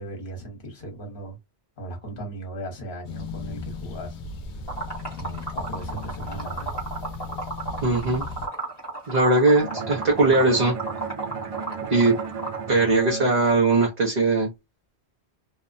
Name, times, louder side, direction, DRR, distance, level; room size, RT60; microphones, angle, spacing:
voice 1, 0.0-1.4 1.8-4.2 5.1-6.7, right 1 dB, 55° left, 1.2 m, -37 dB
sound 1, 3.0-8.5, left 3 dB, 80° left, 0.9 m, -36 dB
Liquid, 4.7-12.7, right 3 dB, 25° left, 1.1 m, -33 dB
voice 2, 7.8-8.2 9.1-10.7 11.9-12.1 12.7-14.5, right 3 dB, 45° right, 0.8 m, -20 dB
Bowed string instrument, 9.4-14.4, right 5 dB, 60° right, 0.4 m, -35 dB
2.8 x 2.1 x 2.4 m
omnidirectional pair, 1.1 m